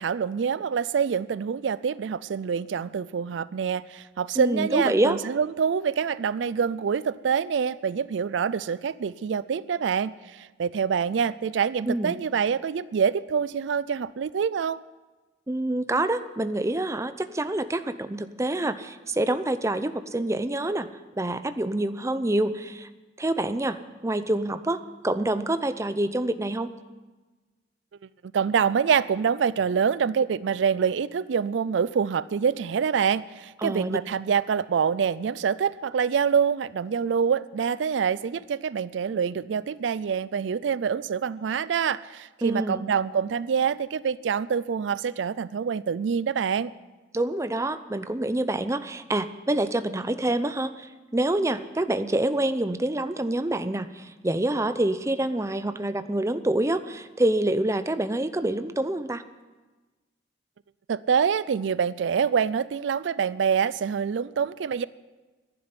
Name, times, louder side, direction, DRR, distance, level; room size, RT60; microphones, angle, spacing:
voice 1, 0.0-14.8 28.2-46.7 60.9-64.8, right 6 dB, 80° right, 18 dB, 0.4 m, -26 dB
voice 2, 4.4-5.2 11.9-12.2 15.5-20.9 21.2-22.9 23.2-23.8 24.0-26.7 33.6-34.0 42.4-42.8 47.1-59.2, right 1 dB, 15° right, 11 dB, 0.6 m, -26 dB
11.0 x 11.0 x 9.7 m, 1.2 s
head